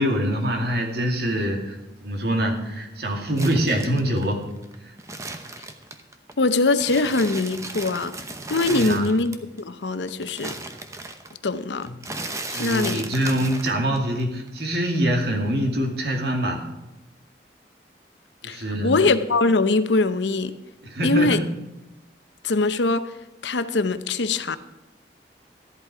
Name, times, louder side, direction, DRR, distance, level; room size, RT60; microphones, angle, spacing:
voice 1, 0.0-1.8 2.0-4.4 4.8-4.9 8.7-9.1 12.5-16.7 18.4-19.0 20.8-21.5, equal, 60° right, 2.4 m, -24 dB
sound 1, 3.4-6.3 6.7-9.6 9.8-14.2 14.5-15.4, right 2 dB, 15° right, 0.8 m, -35 dB
voice 2, 6.4-8.2 8.5-10.5 11.4-11.9 12.5-13.0 18.4-20.6 21.0-21.4 22.4-23.1 23.4-24.6, left 3 dB, 85° left, 0.8 m, -22 dB
13.5 x 11.0 x 4.9 m
head